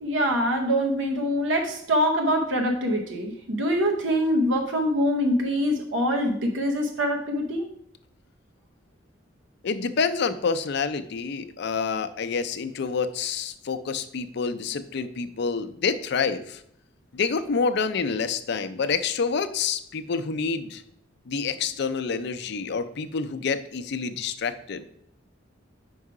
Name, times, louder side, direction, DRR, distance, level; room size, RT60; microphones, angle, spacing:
voice 1, 0.0-7.7 18.8-18.9, equal, 80° right, 2 dB, 0.8 m, -24 dB
voice 2, 9.6-16.6 17.1-20.8 21.3-24.8, left 5 dB, 60° left, 10 dB, 0.5 m, -28 dB
5.4 x 4.7 x 4.8 m, 0.70 s
head